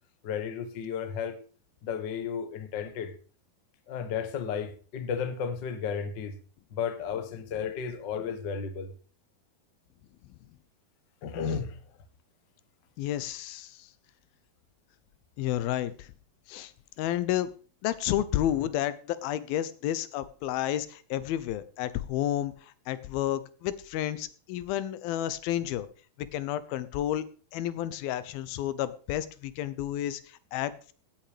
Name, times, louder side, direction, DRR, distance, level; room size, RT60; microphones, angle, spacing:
voice 1, 0.2-1.3 1.8-3.1 3.9-6.4 6.7-8.9 11.2-11.8, left 7 dB, 50° left, 1.4 m, -33 dB
voice 2, 13.0-13.9 15.4-16.1 16.5-16.7 17.0-17.5 17.8-25.9 26.2-27.2 27.5-30.9, left 12 dB, 85° left, 2.7 m, -31 dB
17.0 x 8.9 x 5.0 m
omnidirectional pair, 4.1 m